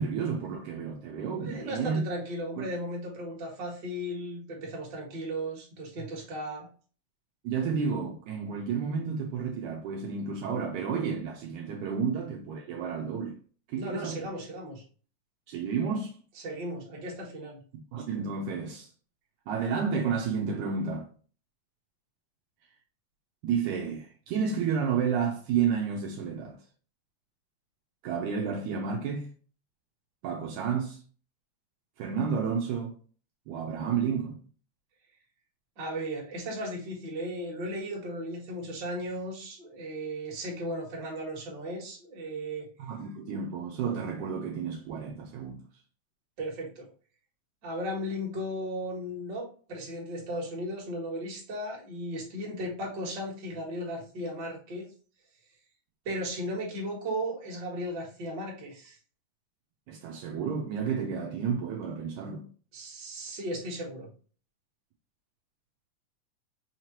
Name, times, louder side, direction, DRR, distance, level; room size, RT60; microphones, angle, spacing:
voice 1, 0.0-2.1 2.6-2.7 7.4-13.4 13.7-14.3 15.5-16.1 17.9-18.9 19.5-21.1 23.4-26.6 28.0-29.3 30.2-31.0 32.0-32.9 33.5-34.4 42.8-45.6 59.9-62.5, right 6 dB, 80° right, 2.0 m, -31 dB
voice 2, 1.4-6.7 13.8-14.8 16.4-17.6 35.8-42.7 46.4-46.9 47.6-54.9 56.0-59.0 62.7-64.1, equal, 45° right, 1.7 m, -36 dB
5.7 x 3.2 x 2.9 m
omnidirectional pair, 3.7 m